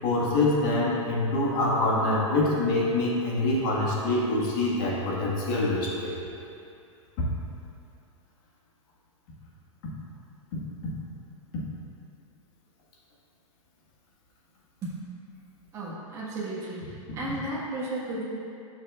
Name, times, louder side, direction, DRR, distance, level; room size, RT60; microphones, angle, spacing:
voice 1, 0.0-6.2 7.2-7.3, left 2 dB, 45° left, -4 dB, 1.7 m, -25 dB
voice 2, 15.7-16.9 17.2-18.2, right 1 dB, 20° right, -8 dB, 1.7 m, -33 dB
11.5 x 6.4 x 2.5 m, 2.6 s
hypercardioid pair, 160°, 17 cm